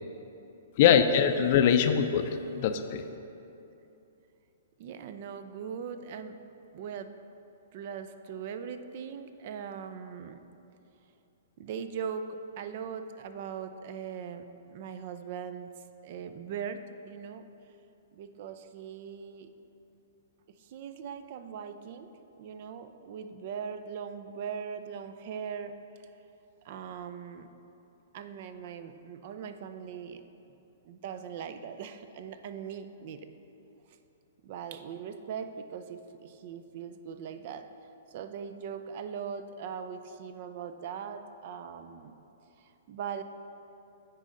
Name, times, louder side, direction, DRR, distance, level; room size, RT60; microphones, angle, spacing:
voice 1, 0.8-3.0, left 8 dB, 50° left, 8 dB, 0.4 m, -23 dB
voice 2, 4.8-6.4 6.7-7.1 7.7-10.4 11.6-15.7 16.0-17.5 18.1-19.5 20.6-22.1 22.4-25.8 26.6-27.5 28.1-30.2 30.8-33.2 34.4-37.7 38.1-42.2 42.6-43.2, right 7 dB, 50° right, 10 dB, 0.4 m, -40 dB
9.8 x 4.1 x 3.8 m, 2.8 s
hypercardioid pair, 130°, 0 cm